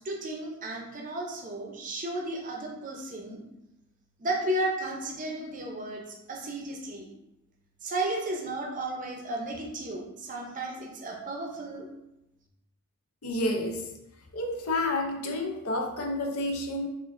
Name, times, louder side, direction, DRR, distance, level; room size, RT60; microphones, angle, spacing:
voice 1, 0.0-3.4 4.2-6.0 6.3-7.1 7.8-11.9, right 1 dB, 35° right, 0 dB, 0.6 m, -33 dB
voice 2, 13.2-13.9 14.3-16.9, left 1 dB, 75° left, 2 dB, 0.5 m, -30 dB
4.8 x 2.5 x 2.5 m, 0.90 s
head